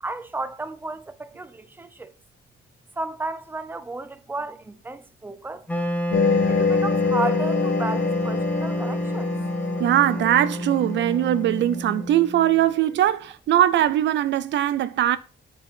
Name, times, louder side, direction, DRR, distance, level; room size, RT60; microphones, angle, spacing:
voice 1, 0.0-2.1 3.0-5.7 6.5-9.3, right 2 dB, 10° right, 0.6 m, -33 dB
Wind instrument woodwind instrument, 5.7-12.6, equal, 5° left, 1.0 m, -29 dB
sound 1, 6.1-11.6, left 5 dB, 70° left, 1.3 m, -26 dB
voice 2, 9.8-15.2, right 12 dB, 65° right, 0.4 m, -21 dB
7.5 x 4.4 x 4.4 m
cardioid pair, 90°, 20 cm